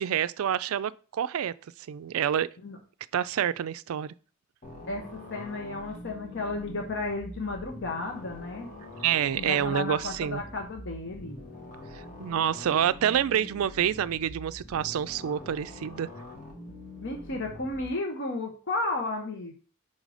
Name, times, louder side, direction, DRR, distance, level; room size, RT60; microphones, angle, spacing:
voice 1, 0.0-1.5 1.9-2.5 3.1-4.1 9.0-10.4 11.9-16.1, right 9 dB, 75° right, 0.3 m, -27 dB
sound 1, 4.6-17.9, left 1 dB, 35° left, 1.9 m, -45 dB
voice 2, 4.9-8.7 9.3-11.4 17.0-19.5, left 2 dB, 55° left, 1.0 m, -33 dB
5.5 x 3.9 x 4.9 m
head